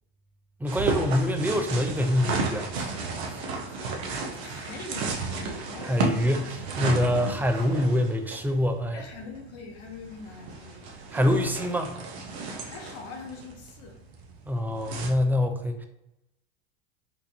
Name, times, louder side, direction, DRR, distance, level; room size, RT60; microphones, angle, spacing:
voice 1, 0.6-2.7 5.8-6.4 6.8-9.0 11.1-11.9 14.5-15.9, left 1 dB, 5° right, 5 dB, 0.4 m, -25 dB
sound 1, 0.7-15.1, right 3 dB, 75° right, 0.9 m, -33 dB
voice 2, 3.6-4.0 4.3-6.6 8.9-10.9 12.6-14.0, left 4 dB, 50° left, 2 dB, 1.2 m, -43 dB
4.4 x 2.6 x 2.6 m, 0.91 s
hypercardioid pair, 90°, 32 cm